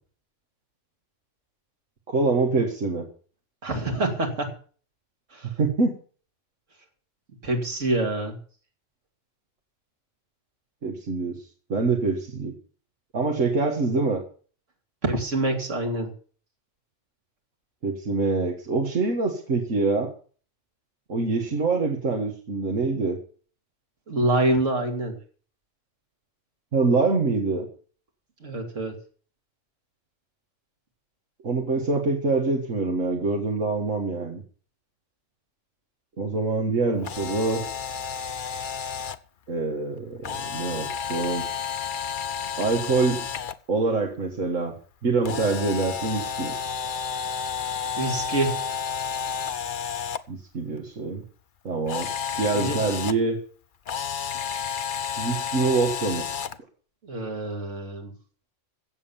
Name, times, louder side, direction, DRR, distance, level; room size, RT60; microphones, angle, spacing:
voice 1, 2.1-3.1 5.6-5.9 10.8-12.5 13.1-14.2 17.8-20.1 21.1-23.2 26.7-27.7 31.4-34.4 36.2-37.6 39.5-41.5 42.6-43.3 43.7-44.7 45.0-46.5 50.3-51.2 51.6-52.1 52.4-53.4 55.2-56.3, right 3 dB, 90° right, 2 dB, 2.0 m, -25 dB
voice 2, 3.6-4.5 5.3-5.5 7.4-8.4 15.0-16.1 24.1-25.2 28.4-29.0 48.0-48.6 52.5-52.8 57.0-58.1, right 2 dB, 75° right, 3 dB, 3.0 m, -26 dB
Camera, 37.0-39.2 40.2-43.5 45.2-50.2 51.9-53.1 53.8-56.6, left 7 dB, 50° left, 0.8 m, -31 dB
16.0 x 7.4 x 7.1 m, 0.43 s
omnidirectional pair, 1.3 m